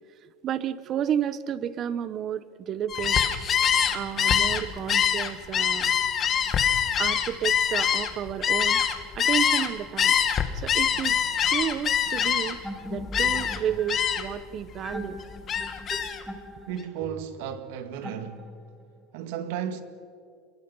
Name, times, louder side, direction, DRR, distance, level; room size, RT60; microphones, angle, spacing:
voice 1, 0.2-3.2 3.9-5.9 7.0-8.8 9.1-10.2 10.5-11.2 11.5-15.2, right 9 dB, 40° right, 1.0 m, -31 dB
Gull seagull, 2.9-9.7 10.0-12.7 13.1-13.6 13.9-14.4 14.7-16.2, left 8 dB, 35° left, 1.7 m, -24 dB
sound 1, 12.6-18.8, left 1 dB, ahead, 2.0 m, -40 dB
voice 2, 16.7-18.5 19.1-19.8, right 8 dB, 75° right, 1.9 m, -34 dB
26.0 x 22.5 x 5.6 m
supercardioid pair, 130°, 0 cm